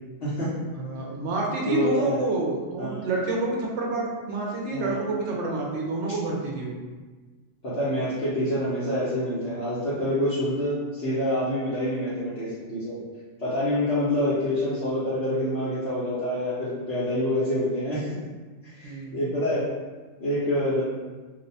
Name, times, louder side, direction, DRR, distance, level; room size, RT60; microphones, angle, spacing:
voice 1, 0.2-0.5 1.6-2.2 2.8-3.0 4.7-5.0 7.6-13.0 13.4-18.2 18.7-19.7 20.2-20.8, left 1 dB, 60° left, -11 dB, 1.0 m, -27 dB
voice 2, 0.7-6.8 18.8-19.3, right 2 dB, 70° right, -2 dB, 0.9 m, -28 dB
2.8 x 2.1 x 4.0 m, 1.3 s
omnidirectional pair, 1.3 m